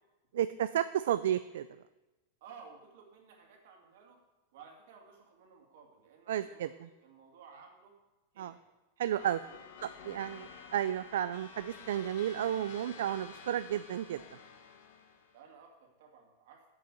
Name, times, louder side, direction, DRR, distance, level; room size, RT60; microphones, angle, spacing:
voice 1, 0.3-1.8 6.3-6.9 8.4-8.5 9.0-9.4 9.8-14.2, right 11 dB, 70° right, 13 dB, 0.3 m, -32 dB
voice 2, 2.4-4.2 4.5-7.9 8.3-8.6 9.1-10.6 15.3-16.6, right 6 dB, 50° right, 1 dB, 2.3 m, -56 dB
sound 1, 9.2-15.4, left 6 dB, 50° left, 1.2 m, -51 dB
8.8 x 6.6 x 8.4 m, 1.1 s
supercardioid pair, 180°, 0 cm